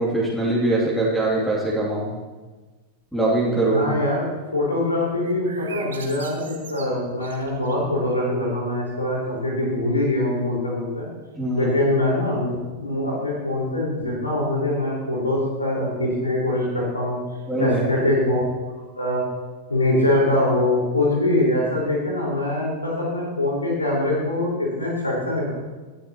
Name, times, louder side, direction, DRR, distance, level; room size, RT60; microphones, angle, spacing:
voice 1, 0.0-2.1 3.1-3.9 11.4-11.8 17.5-17.8, right 2 dB, ahead, -5 dB, 2.7 m, -22 dB
voice 2, 3.7-4.3 4.5-11.1 11.6-17.2 17.6-18.4 18.9-19.2 19.7-25.5, left 1 dB, 80° left, -3 dB, 4.5 m, -23 dB
sound 1, 5.2-7.9, right 6 dB, 65° right, 1.5 m, -41 dB
18.0 x 11.0 x 3.0 m, 1.3 s
figure-of-eight pair, 90°, 0 cm